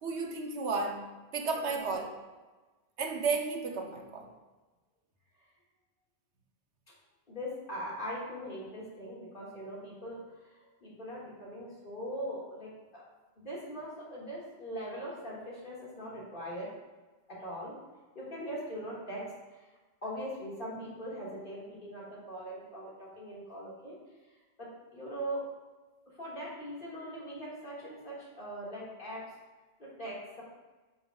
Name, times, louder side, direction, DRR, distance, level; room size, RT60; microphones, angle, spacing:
voice 1, 0.0-1.0 1.3-2.1 3.0-4.3, right 4 dB, 90° right, 3 dB, 1.1 m, -33 dB
voice 2, 1.6-1.9 7.3-13.0 13.4-16.7 17.3-17.7 18.1-19.2 19.5-19.7 20.0-24.0 24.2-24.3 24.6-25.4 26.1-29.2 29.8-30.4, equal, 50° left, -6 dB, 2.1 m, -41 dB
9.7 x 5.4 x 2.3 m, 1.2 s
omnidirectional pair, 1.1 m